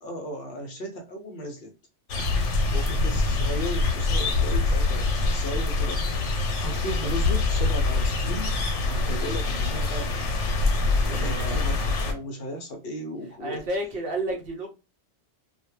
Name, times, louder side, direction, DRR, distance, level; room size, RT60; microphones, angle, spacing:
voice 1, 0.0-1.8 2.8-8.6 8.9-10.2 11.1-13.6 14.3-14.4, equal, 60° left, 0.7 m, -36 dB
sound 1, 2.1-12.1, left 3 dB, 85° left, 0.9 m, -25 dB
voice 2, 2.4-2.9 11.0-11.6 13.4-14.7, right 1 dB, 60° right, 0.8 m, -32 dB
2.2 x 2.1 x 3.0 m
omnidirectional pair, 1.2 m